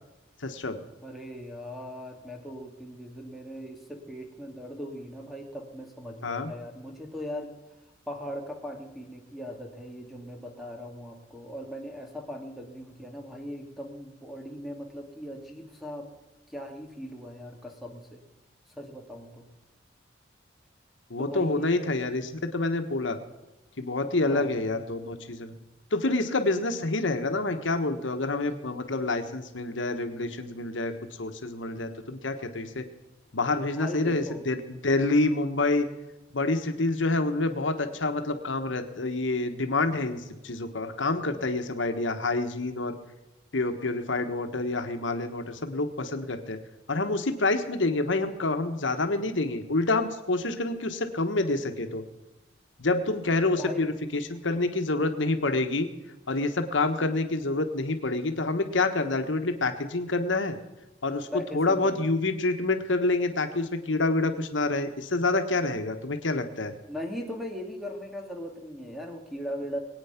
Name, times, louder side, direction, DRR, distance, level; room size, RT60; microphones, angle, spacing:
voice 1, 0.4-0.8 6.2-6.5 21.1-23.2 23.8-25.5 25.9-30.9 31.2-32.8 33.3-35.9 36.3-42.9 43.5-46.6 46.9-52.0 52.8-55.9 56.3-60.6 61.0-61.3 61.5-66.7, left 2 dB, 80° left, 7 dB, 1.3 m, -27 dB
voice 2, 1.0-7.5 8.1-16.1 16.5-18.2 18.8-19.5 21.2-21.9 24.2-24.5 33.8-34.4 53.6-53.9 57.0-57.1 61.3-62.1 66.9-69.8, equal, ahead, 2 dB, 2.2 m, -39 dB
21.5 x 9.1 x 5.9 m, 1.1 s
head